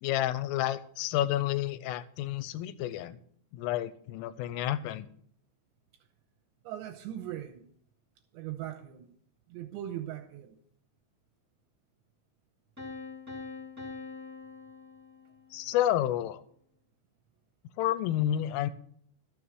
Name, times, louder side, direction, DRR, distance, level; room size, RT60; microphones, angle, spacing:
voice 1, 0.0-3.2 3.5-5.1 15.5-16.4 17.8-18.7, left 12 dB, 85° left, 3.2 m, -30 dB
voice 2, 6.6-7.7 8.3-9.1 9.5-10.6, right 12 dB, 80° right, 2.7 m, -39 dB
Piano, 12.8-15.6, left 4 dB, 25° right, 0.3 m, -44 dB
13.0 x 7.1 x 6.0 m
omnidirectional pair, 5.8 m